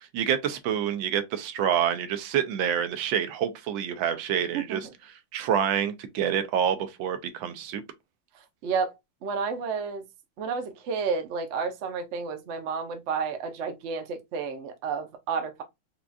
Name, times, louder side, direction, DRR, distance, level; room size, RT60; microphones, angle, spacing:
voice 1, 0.1-4.9 5.3-7.8, right 9 dB, 90° right, 1.4 m, -27 dB
voice 2, 4.5-4.9 8.6-8.9 9.2-10.0 10.4-15.6, right 5 dB, 65° right, 0.7 m, -31 dB
4.7 x 2.3 x 2.5 m
omnidirectional pair, 2.1 m